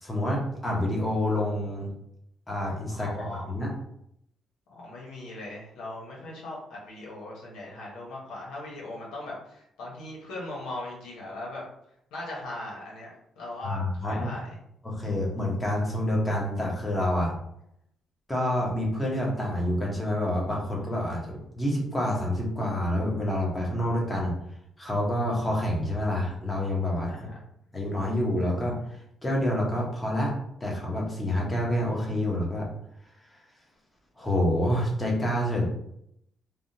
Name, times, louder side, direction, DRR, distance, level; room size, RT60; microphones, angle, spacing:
voice 1, 0.0-1.9 2.5-3.7 13.6-14.3 14.8-17.3 18.3-24.3 24.8-27.1 27.7-30.3 30.6-32.7 34.2-35.7, left 1 dB, 15° left, -3 dB, 1.1 m, -28 dB
voice 2, 2.9-3.5 4.7-11.6 12.1-14.6 27.1-27.3, left 2 dB, 90° left, -3 dB, 1.2 m, -39 dB
3.4 x 2.4 x 2.8 m, 0.74 s
cardioid pair, 90°, 0 cm